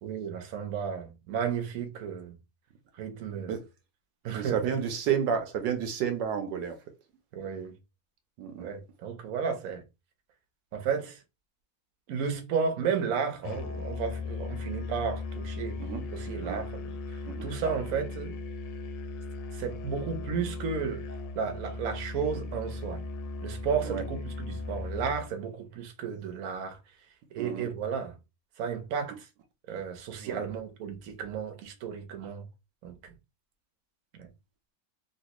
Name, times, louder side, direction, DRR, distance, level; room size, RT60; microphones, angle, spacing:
voice 1, 0.0-2.4 3.0-3.5 4.2-4.6 7.3-7.7 8.6-9.8 10.7-11.2 12.1-15.8 16.1-16.8 17.1-18.4 19.5-21.0 21.3-23.0 23.4-26.8 27.3-28.1 28.6-29.3 29.7-32.5 32.8-32.9, right 6 dB, 60° right, 1.0 m, -33 dB
voice 2, 4.3-6.8 8.4-8.7 15.8-16.1 16.4-16.6 17.2-17.5 23.8-24.0 27.4-27.7 30.2-30.4, right 8 dB, 75° right, 1.3 m, -31 dB
Musical instrument, 13.4-25.3, left 3 dB, 75° left, 1.2 m, -37 dB
3.2 x 2.8 x 2.9 m
omnidirectional pair, 2.0 m